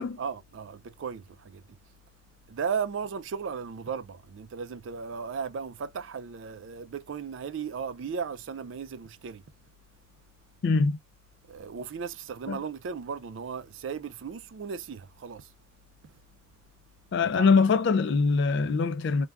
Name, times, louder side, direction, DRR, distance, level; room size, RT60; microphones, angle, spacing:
voice 1, 0.0-1.8 2.5-9.4 11.5-15.5 16.0-16.2 17.2-17.6, right 6 dB, 65° right, 0.4 m, -36 dB
voice 2, 10.6-11.0 12.5-12.6 17.1-19.3, left 4 dB, 60° left, 0.3 m, -23 dB
2.4 x 2.3 x 3.3 m
head